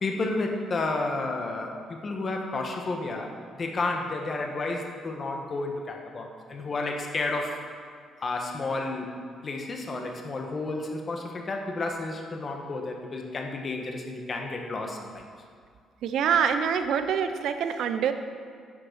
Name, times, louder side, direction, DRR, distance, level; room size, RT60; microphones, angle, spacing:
voice 1, 0.0-7.6 8.2-9.1 9.4-15.2, left 3 dB, 30° left, 2 dB, 1.2 m, -31 dB
voice 2, 16.0-18.1, right 7 dB, 65° right, 9 dB, 0.7 m, -25 dB
9.9 x 6.6 x 6.6 m, 2.1 s
cardioid pair, 150°, 0 cm